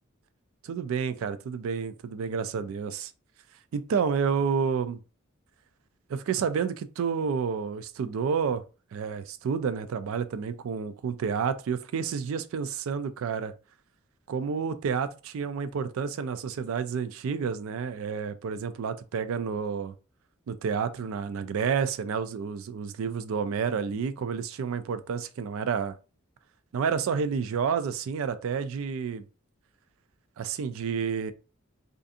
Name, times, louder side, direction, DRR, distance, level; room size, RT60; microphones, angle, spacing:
voice 1, 0.6-3.1 3.7-5.0 6.1-8.6 8.9-13.5 14.3-19.9 20.5-26.0 26.7-29.2 30.4-31.3, right 6 dB, 80° right, 0.3 m, -30 dB
2.5 x 2.5 x 2.4 m
head